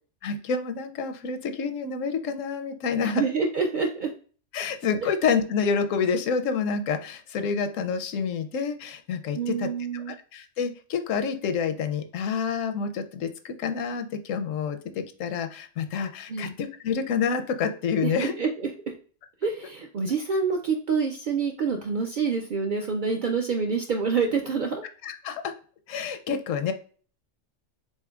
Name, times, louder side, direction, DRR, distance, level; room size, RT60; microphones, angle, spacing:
voice 1, 0.2-3.2 4.5-9.7 10.3-18.3 25.0-25.5 25.9-26.7, left 6 dB, 80° left, 8 dB, 1.0 m, -28 dB
voice 2, 3.0-4.1 9.3-10.1 16.3-16.5 18.0-18.7 19.4-24.8, right 5 dB, 65° right, 2 dB, 0.5 m, -27 dB
4.3 x 3.8 x 2.3 m, 0.41 s
omnidirectional pair, 1.3 m